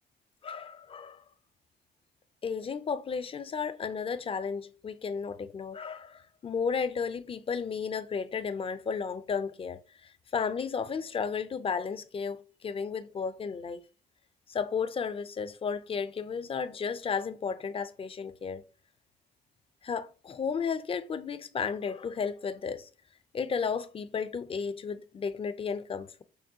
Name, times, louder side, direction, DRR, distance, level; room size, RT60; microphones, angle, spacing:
voice 1, 0.4-1.2 2.4-13.8 14.5-18.6 19.8-22.9 23.3-26.2, left 6 dB, 30° left, 0.4 m, -33 dB
6.2 x 2.2 x 2.7 m
cardioid pair, 90°, 20 cm